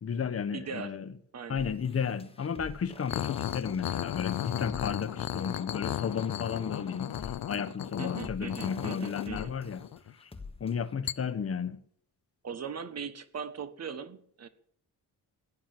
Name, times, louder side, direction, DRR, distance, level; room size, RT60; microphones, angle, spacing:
voice 1, 0.0-1.1 1.5-9.9 10.2-10.3 10.6-11.8, left 7 dB, 35° left, 1.1 m, -33 dB
voice 2, 0.5-1.0 1.3-1.7 8.0-9.5 12.4-14.5, right 6 dB, 40° right, 1.5 m, -40 dB
sound 1, 1.6-10.9, left 3 dB, 15° left, 1.4 m, -49 dB
sound 2, 3.1-10.1 11.1-11.2, left 12 dB, 65° left, 0.7 m, -35 dB
17.0 x 11.5 x 7.7 m
wide cardioid pair, 170°, 39 cm